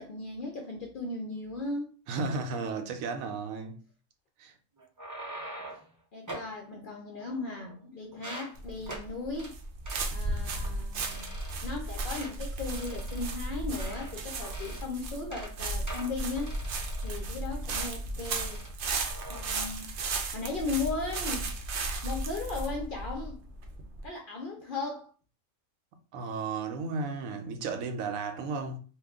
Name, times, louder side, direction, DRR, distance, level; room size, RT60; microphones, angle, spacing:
voice 1, 0.0-1.9 6.1-9.5 10.1-11.3 11.6-16.6 17.0-18.6 19.3-19.9 20.3-21.5 22.0-23.4 24.0-25.1, left 3 dB, 60° left, 0.5 m, -36 dB
voice 2, 2.1-3.8 4.4-4.5 26.1-28.8, right 4 dB, 80° right, 1.0 m, -34 dB
sound 1, 4.8-5.9 6.3-6.5 7.2-7.8 8.1-8.5 8.9-9.1 9.4-9.5 9.8-10.1 10.5-10.7 11.0-11.8 12.1-12.3 12.7-14.1 14.4-14.9 15.2-15.5 15.9-17.3 17.7-17.9 18.2-18.7 19.0-19.4, right 1 dB, 30° right, 0.3 m, -44 dB
sound 2, 8.6-24.1, right 2 dB, 65° right, 0.8 m, -35 dB
2.9 x 2.2 x 3.5 m
omnidirectional pair, 1.4 m